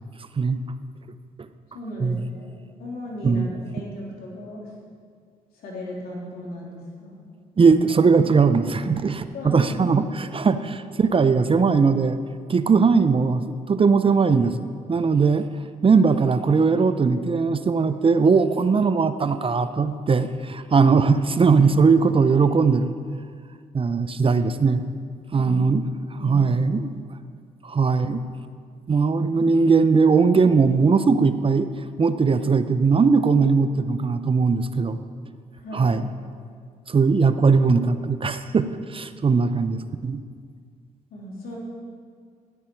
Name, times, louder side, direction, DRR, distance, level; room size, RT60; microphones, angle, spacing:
voice 1, 1.7-2.5 2.8-4.7 5.5-7.1 9.2-10.1 25.3-25.6 26.2-26.8 35.5-36.0 41.1-41.6, left 1 dB, 75° left, -3 dB, 3.3 m, -36 dB
voice 2, 7.6-12.2 12.5-15.5 15.8-22.9 23.7-24.8 25.3-25.8 26.2-26.8 27.6-28.2 28.9-31.7 32.0-35.0 35.7-36.0 36.9-40.2, right 5 dB, 35° right, 11 dB, 0.6 m, -19 dB
13.5 x 10.0 x 4.6 m, 2.1 s
cardioid pair, 65°, 16 cm